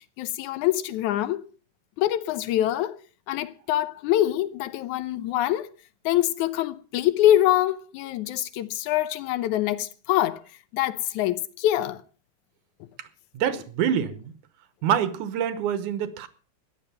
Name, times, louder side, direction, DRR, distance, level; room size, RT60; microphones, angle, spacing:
voice 1, 0.2-1.4 2.0-3.0 3.3-5.7 6.1-10.4 10.7-12.0, left 13 dB, 80° left, 2.3 m, -24 dB
voice 2, 13.3-14.3 14.8-16.3, right 9 dB, 85° right, 2.5 m, -26 dB
14.0 x 10.5 x 5.6 m
omnidirectional pair, 3.4 m